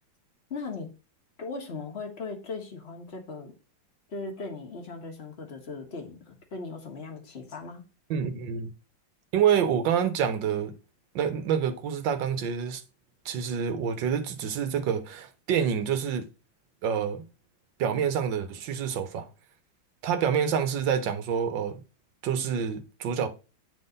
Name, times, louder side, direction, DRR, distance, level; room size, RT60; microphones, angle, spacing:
voice 1, 0.5-0.9 1.4-3.5 4.1-7.8, left 4 dB, 35° left, 1.6 m, -38 dB
voice 2, 8.1-8.7 9.3-10.7 11.1-12.8 13.2-16.3 16.8-17.2 17.8-19.3 20.0-21.8 22.2-23.3, right 8 dB, 75° right, 1.6 m, -27 dB
9.6 x 3.8 x 3.9 m
omnidirectional pair, 2.1 m